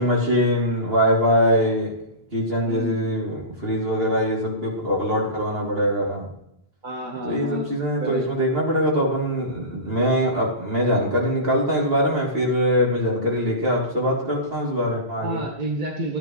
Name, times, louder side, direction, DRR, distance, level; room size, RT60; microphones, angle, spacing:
voice 1, 0.0-1.9 2.3-6.3 7.2-15.4, equal, 70° right, -3 dB, 3.3 m, -22 dB
voice 2, 2.6-3.0 6.8-7.7 8.0-8.2 15.2-16.2, equal, 45° right, 0 dB, 1.4 m, -29 dB
13.0 x 10.0 x 3.1 m, 0.78 s
omnidirectional pair, 1.0 m